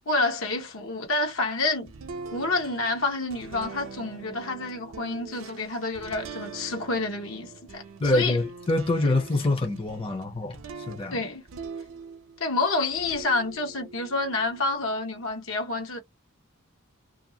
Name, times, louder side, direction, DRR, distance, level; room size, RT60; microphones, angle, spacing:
voice 1, 0.1-1.9 2.3-8.4 11.1-11.4 12.4-16.0, left 3 dB, 75° left, 1.0 m, -28 dB
sound 1, 1.9-12.5 12.9-15.2, right 4 dB, 80° right, 0.6 m, -43 dB
voice 2, 8.0-11.2, left 2 dB, 25° left, 0.6 m, -25 dB
2.5 x 2.4 x 2.7 m
head